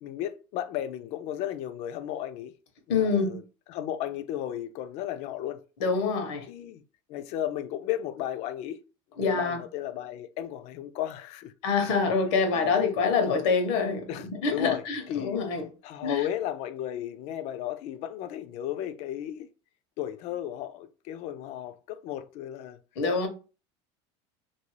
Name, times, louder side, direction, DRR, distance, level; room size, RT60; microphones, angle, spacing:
voice 1, 0.0-2.5 2.9-3.4 3.7-5.6 6.5-6.8 7.1-8.8 9.2-11.5 12.5-12.8 14.1-15.4 15.8-19.5 20.0-22.8, left 11 dB, 50° left, 0.4 m, -34 dB
voice 2, 2.9-3.4 5.8-6.5 9.2-9.6 11.6-14.1 14.4-15.7 16.0-16.2 23.0-23.3, left 5 dB, 75° left, 1.0 m, -25 dB
2.6 x 2.6 x 3.1 m
cardioid pair, 160°, 15 cm